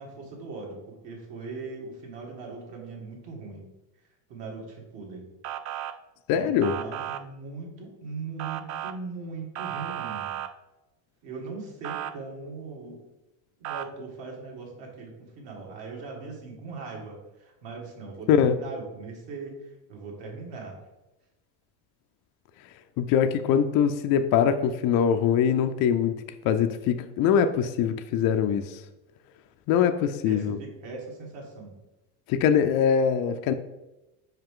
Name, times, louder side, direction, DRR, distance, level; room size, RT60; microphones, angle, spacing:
voice 1, 0.0-3.6 4.3-5.2 6.3-10.4 11.2-13.0 13.6-20.7 30.2-31.7, right 4 dB, 60° right, -1 dB, 2.2 m, -40 dB
Motor vehicle (road) / Siren, 5.4-5.9 6.6-7.2 8.4-8.9 9.6-10.5 11.8-12.1 13.6-13.9, right 12 dB, 40° right, 0.4 m, -34 dB
voice 2, 6.3-6.8 18.3-18.6 23.0-26.1 26.4-28.8 29.7-30.6 32.3-33.5, left 8 dB, 50° left, 8 dB, 0.5 m, -23 dB
5.7 x 4.8 x 3.7 m, 0.99 s
supercardioid pair, 115°, 48 cm